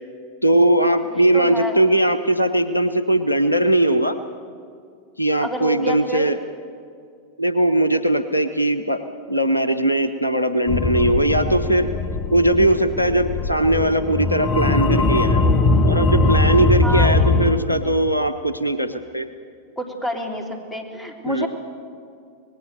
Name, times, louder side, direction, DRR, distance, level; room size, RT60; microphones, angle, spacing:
voice 1, 0.4-4.2 5.2-6.4 7.4-9.0 9.3-11.9 12.3-15.6 15.8-19.3 21.3-21.5, right 1 dB, 85° left, 11 dB, 0.9 m, -19 dB
voice 2, 1.1-1.8 5.4-6.3 16.8-17.6 19.8-21.5, right 1 dB, 10° left, 2 dB, 3.4 m, -29 dB
sound 1, 10.7-17.5, left 2 dB, 30° left, 1.7 m, -20 dB
25.5 x 19.5 x 6.9 m, 2.3 s
figure-of-eight pair, 90°, 0 cm